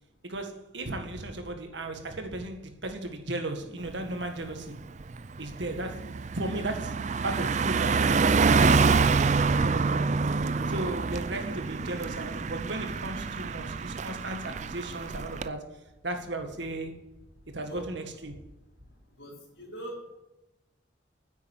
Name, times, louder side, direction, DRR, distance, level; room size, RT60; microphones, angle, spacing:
voice 1, 0.2-4.8 5.4-8.9 9.5-10.1 10.7-15.8 16.0-17.1 17.5-18.4, right 2 dB, 70° right, 1.9 m, -36 dB
Car passing by, 3.9-4.1 4.5-15.5, right 4 dB, 35° right, 0.4 m, -26 dB
voice 2, 19.2-20.1, right 1 dB, 75° left, 3.9 m, -42 dB
10.0 x 8.2 x 8.8 m
head